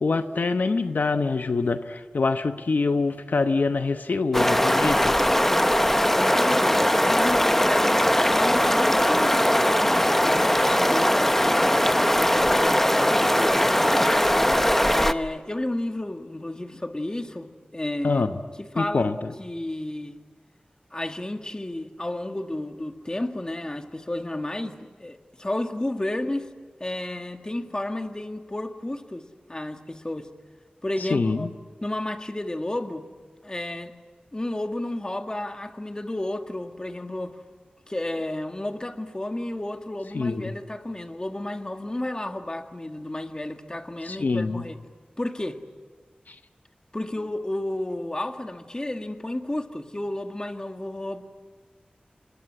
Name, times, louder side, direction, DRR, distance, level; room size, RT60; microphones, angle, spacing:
voice 1, 0.0-5.2 18.0-18.3 18.8-19.3 31.0-31.5 40.1-40.5 44.0-44.6 46.3-46.4, left 3 dB, 80° left, 1.0 m, -25 dB
sound 1, 4.3-15.1, equal, 10° left, 0.9 m, -20 dB
voice 2, 6.1-11.7 12.1-14.3 15.0-18.2 18.6-19.1 19.4-20.2 20.9-26.5 26.8-30.3 30.8-31.5 31.8-33.0 33.4-33.9 34.3-37.4 37.9-44.8 45.2-45.6 46.9-51.2, left 1 dB, 25° left, 1.8 m, -32 dB
27.5 x 21.0 x 9.9 m
wide cardioid pair, 70°, 3 cm